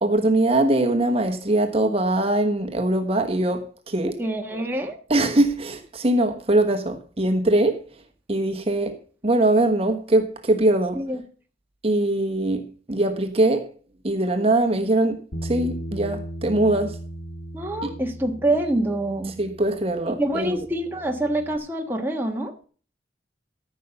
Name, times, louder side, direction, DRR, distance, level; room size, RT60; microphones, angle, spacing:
voice 1, 0.0-4.2 5.1-7.8 8.3-9.0 9.2-11.0 11.8-12.6 12.9-13.7 14.0-17.0 17.8-17.9 19.4-20.7, right 1 dB, 35° right, 1.2 m, -22 dB
voice 2, 4.2-5.0 10.9-11.2 17.5-19.3 20.2-22.5, right 1 dB, 10° right, 1.3 m, -26 dB
Bass guitar, 15.3-21.6, right 1 dB, 85° left, 1.5 m, -37 dB
14.0 x 5.4 x 6.9 m
head